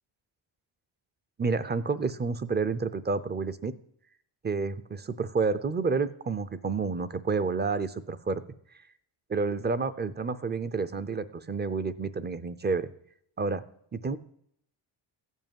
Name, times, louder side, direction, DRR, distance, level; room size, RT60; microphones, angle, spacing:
voice 1, 1.4-3.7 4.4-8.4 9.3-12.9 13.4-13.6 13.9-14.2, right 4 dB, 20° right, 14 dB, 0.5 m, -29 dB
14.5 x 5.4 x 9.0 m, 0.70 s
cardioid pair, 150°, 47 cm